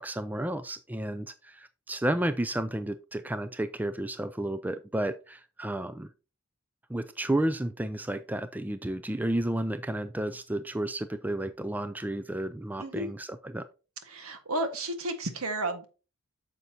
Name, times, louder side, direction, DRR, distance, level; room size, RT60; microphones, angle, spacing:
voice 1, 0.0-6.1 6.9-13.7, right 1 dB, 10° right, 0.3 m, -32 dB
voice 2, 14.1-15.9, right 2 dB, 75° right, 1.6 m, -32 dB
9.2 x 6.7 x 2.8 m
head